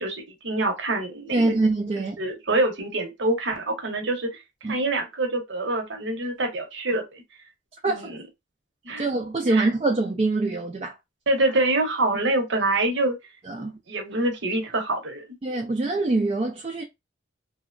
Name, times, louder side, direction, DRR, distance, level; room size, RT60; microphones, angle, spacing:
voice 1, 0.0-1.4 2.2-7.2 7.9-8.2 8.8-9.1 9.5-9.7 11.3-13.2 13.6-15.3, right 2 dB, 75° right, 0.8 m, -26 dB
voice 2, 1.3-2.2 4.6-4.8 7.8-8.1 9.0-10.9 13.4-13.7 15.4-16.8, right 2 dB, 30° right, 0.3 m, -24 dB
2.8 x 2.1 x 2.4 m
head